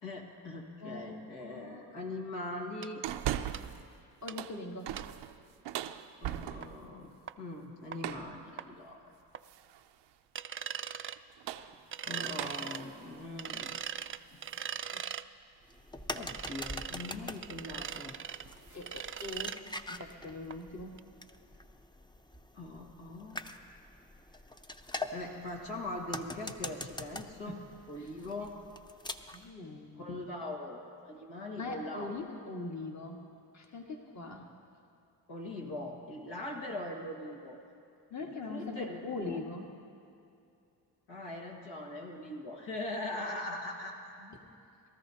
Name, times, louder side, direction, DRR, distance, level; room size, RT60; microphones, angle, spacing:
voice 1, 0.0-3.0 6.2-9.1 12.0-13.8 14.3-14.4 16.1-18.2 22.5-23.4 24.9-27.6 27.9-28.6 30.0-32.2 35.3-37.6 38.2-39.4 41.1-44.2, left 1 dB, 80° left, -1 dB, 2.0 m, -41 dB
voice 2, 0.8-1.9 4.2-4.9 14.9-15.0 18.7-20.9 27.5-27.6 28.0-28.1 29.3-30.2 31.6-33.2 33.5-34.5 38.1-39.7 44.2-44.4, left 3 dB, 40° left, 1 dB, 1.7 m, -42 dB
sound 1, 2.8-2.9 3.5-3.6 4.3-4.4 5.0-5.1 6.6-6.7 7.3-7.4 7.9-8.0 8.6-8.7 9.3-9.4 10.4-11.2 11.9-12.8 13.4-15.3 16.2-17.1 17.4-18.4 18.8-19.6 20.0-20.1 20.5-20.6 21.0-21.1, right 8 dB, 30° right, 0.4 m, -40 dB
sound 2, 3.0-3.9 4.2-6.9 8.0-8.4 9.4-9.9 11.2-14.6 15.1-15.2 16.7-16.9 17.3-17.5 17.8-18.1 18.4-19.5, right 12 dB, 85° right, 0.6 m, -41 dB
sound 3, 15.6-29.5, left 2 dB, 10° left, 0.6 m, -44 dB
22.0 x 13.5 x 2.9 m, 2.5 s
cardioid pair, 60°, 41 cm